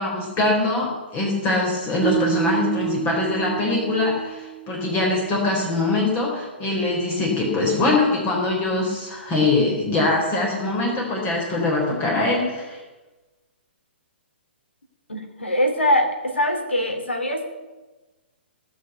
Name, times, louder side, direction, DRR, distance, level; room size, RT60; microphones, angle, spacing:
voice 1, 0.0-12.8, left 2 dB, 25° left, -2 dB, 4.0 m, -23 dB
sound 1, 2.0-5.2, right 20 dB, 20° right, 0.7 m, -29 dB
voice 2, 15.1-17.5, left 1 dB, 90° left, 5 dB, 2.9 m, -22 dB
18.0 x 6.3 x 8.1 m, 1.2 s
hypercardioid pair, 130°, 6 cm